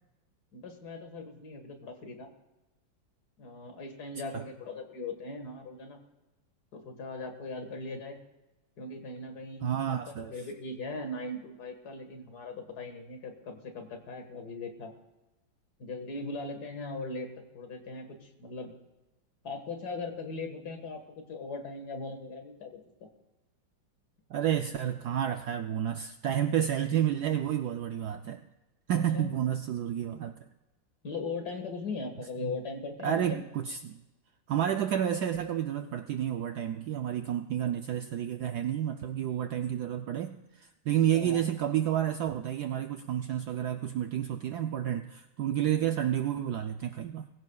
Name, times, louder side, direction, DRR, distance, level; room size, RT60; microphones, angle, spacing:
voice 1, 0.5-2.3 3.4-6.0 6.7-8.2 8.8-14.9 15.8-18.7 19.4-21.0 21.3-23.1 26.8-27.0 28.9-29.4 31.0-33.4 41.1-41.4 45.7-45.9, left 3 dB, 50° left, 5 dB, 2.0 m, -39 dB
voice 2, 9.6-10.3 24.3-28.5 28.9-30.4 32.4-32.6 33.0-34.0 34.5-47.3, right 10 dB, 75° right, 7 dB, 0.9 m, -30 dB
22.0 x 15.5 x 2.3 m, 1.1 s
omnidirectional pair, 2.2 m